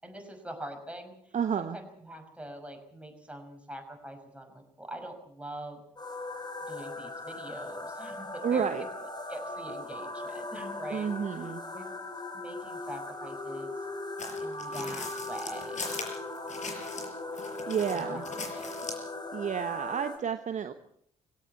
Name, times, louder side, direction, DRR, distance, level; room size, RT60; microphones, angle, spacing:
voice 1, 0.0-5.8 6.7-8.9 9.3-12.0 12.3-13.7 14.4-15.9 17.9-18.7, right 1 dB, 5° right, 3 dB, 5.8 m, -43 dB
voice 2, 1.3-1.8 8.4-8.8 10.9-11.6 17.7-18.2 19.3-20.7, right 7 dB, 40° right, 10 dB, 1.1 m, -30 dB
sound 1, 6.0-20.2, left 2 dB, 20° left, 4.4 m, -39 dB
sound 2, 14.2-17.1 17.4-19.1, left 4 dB, 40° left, 5.5 m, -40 dB
18.5 x 17.0 x 8.6 m, 0.68 s
figure-of-eight pair, 50°, 19 cm